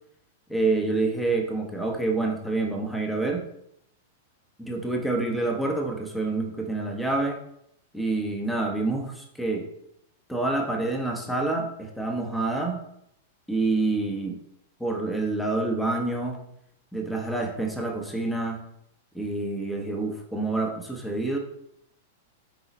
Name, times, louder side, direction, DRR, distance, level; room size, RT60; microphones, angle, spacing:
voice 1, 0.5-3.4 4.6-7.4 7.9-9.7 10.3-12.8 13.5-14.4 14.8-16.4 16.9-18.6 19.1-21.4, right 2 dB, 5° left, 2 dB, 1.2 m, -27 dB
8.4 x 4.0 x 4.2 m, 0.74 s
figure-of-eight pair, 100°, 0 cm